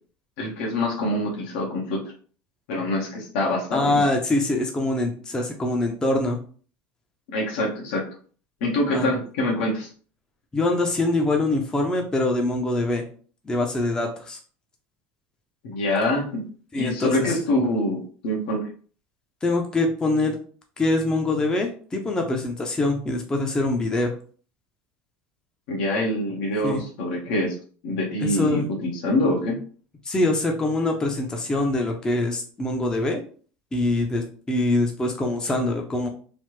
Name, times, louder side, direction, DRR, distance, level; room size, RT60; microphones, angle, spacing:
voice 1, 0.4-2.0 2.7-4.1 7.3-8.0 8.6-9.9 15.6-16.4 16.7-18.6 25.7-27.6 27.8-29.6, left 1 dB, 80° left, -2 dB, 1.0 m, -25 dB
voice 2, 3.7-6.4 8.9-9.1 10.5-13.0 13.5-14.4 16.7-17.3 19.4-20.4 20.8-24.1 26.6-26.8 28.2-28.7 30.0-33.2 33.7-36.1, left 2 dB, 15° left, 2 dB, 0.4 m, -24 dB
3.2 x 2.0 x 3.0 m, 0.43 s
supercardioid pair, 125°, 5 cm